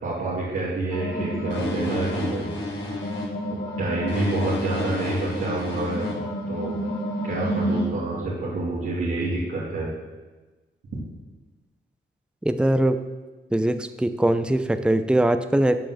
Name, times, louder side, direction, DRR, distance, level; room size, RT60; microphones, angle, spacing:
voice 1, 0.0-2.4 3.5-6.1 6.5-6.7 7.2-9.9, right 2 dB, 85° right, -9 dB, 2.6 m, -28 dB
sound 1, 0.9-7.9, equal, 80° left, 4.3 m, -29 dB
voice 2, 12.4-13.0 13.5-15.8, right 1 dB, 5° right, 9 dB, 0.7 m, -21 dB
12.5 x 4.7 x 7.6 m, 1.2 s
cardioid pair, 60°, 20 cm